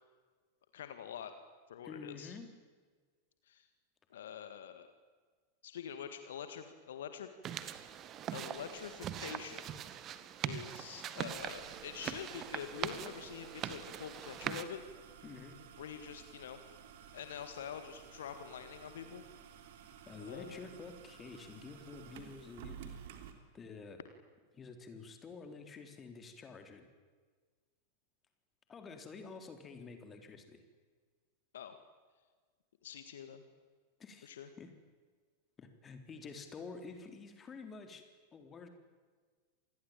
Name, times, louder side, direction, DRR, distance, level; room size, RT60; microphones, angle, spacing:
voice 1, 0.7-1.3 1.7-2.4 3.5-3.7 4.1-4.9 5.6-7.3 8.3-9.8 10.4-14.8 15.8-16.6 17.1-19.2 20.2-20.7 31.5-31.8 32.8-33.4 34.2-34.5, left 8 dB, 60° left, 9 dB, 1.9 m, -46 dB
voice 2, 1.8-2.6 15.2-15.6 20.1-23.0 23.5-24.0 24.5-26.9 28.7-30.6 34.0-34.7 35.6-38.0 38.3-38.7, left 4 dB, 20° left, 7 dB, 3.8 m, -49 dB
sound 1, 7.4-14.6, right 10 dB, 30° right, 1.8 m, -42 dB
sound 2, 11.4-23.3, right 8 dB, 55° right, 3.4 m, -54 dB
27.0 x 20.5 x 9.0 m, 1.5 s
figure-of-eight pair, 90°, 0 cm